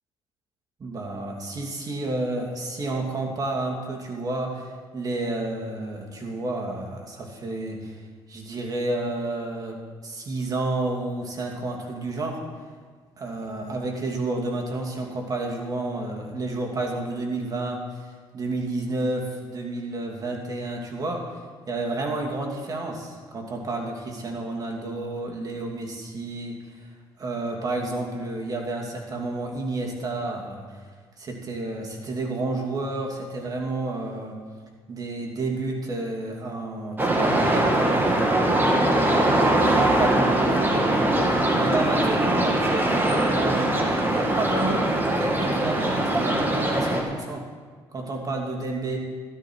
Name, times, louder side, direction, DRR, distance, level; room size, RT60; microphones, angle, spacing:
voice 1, 0.8-8.0 8.3-12.4 13.2-21.3 21.7-26.9 27.2-30.8 31.2-34.4 34.9-38.8 39.6-40.8 41.6-43.7 44.1-44.9 45.1-47.4 47.9-49.0, right 2 dB, 40° right, 1 dB, 2.7 m, -30 dB
sound 1, 37.0-47.0, right 1 dB, 20° right, 2.0 m, -22 dB
13.0 x 12.5 x 4.7 m, 1.5 s
cardioid pair, 90°, 9 cm